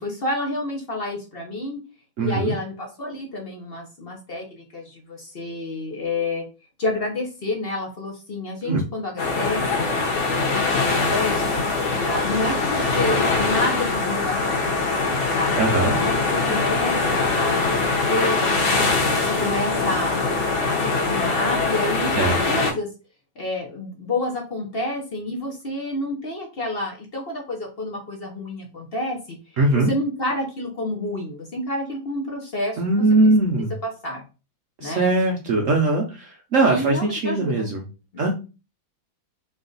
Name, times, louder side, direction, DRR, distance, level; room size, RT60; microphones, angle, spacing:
voice 1, 0.0-1.8 2.2-6.4 6.8-9.9 10.2-11.6 12.0-15.6 16.0-20.1 20.6-22.9 23.4-29.4 29.7-33.0 33.8-34.2 34.8-35.0 36.6-37.7 38.1-38.3, left 2 dB, 45° left, 0 dB, 0.8 m, -29 dB
voice 2, 2.2-2.5 8.6-8.8 15.6-16.0 22.2-22.4 29.6-29.9 32.8-33.7 34.8-37.8 38.2-38.3, right 2 dB, 65° right, 0 dB, 0.8 m, -20 dB
sound 1, 9.2-22.7, left 3 dB, 90° left, 1.8 m, -22 dB
3.8 x 2.5 x 3.8 m, 0.31 s
omnidirectional pair, 2.1 m